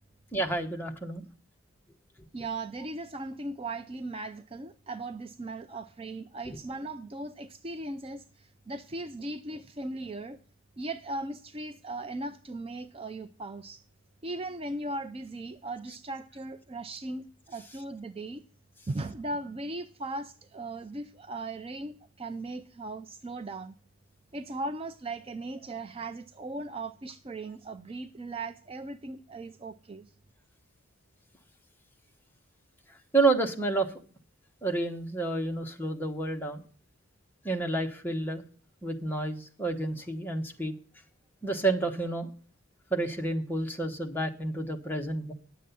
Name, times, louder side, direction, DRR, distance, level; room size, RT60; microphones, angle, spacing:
voice 1, 0.3-1.3 33.1-33.9 34.6-36.6 37.4-38.4 38.8-40.7 41.4-42.3 42.9-45.3, right 2 dB, 10° left, 3 dB, 1.1 m, -29 dB
voice 2, 2.3-10.4 10.8-13.8 14.2-18.4 18.9-23.7 24.3-30.1, right 2 dB, 25° right, 9 dB, 0.4 m, -38 dB
10.0 x 7.4 x 6.9 m, 0.43 s
head